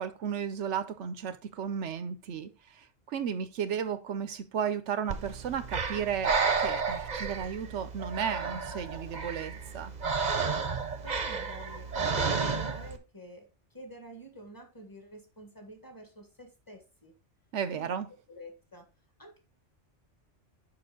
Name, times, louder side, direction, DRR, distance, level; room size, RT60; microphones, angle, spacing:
voice 1, 0.0-9.9 17.5-18.1, right 7 dB, 85° right, 1.1 m, -34 dB
Breathing, 5.1-13.0, right 5 dB, 40° right, 0.9 m, -32 dB
voice 2, 11.0-17.1 17.7-17.9 18.3-18.9 19.2-19.4, equal, 15° left, 1.6 m, -49 dB
6.9 x 5.5 x 3.8 m
omnidirectional pair, 1.2 m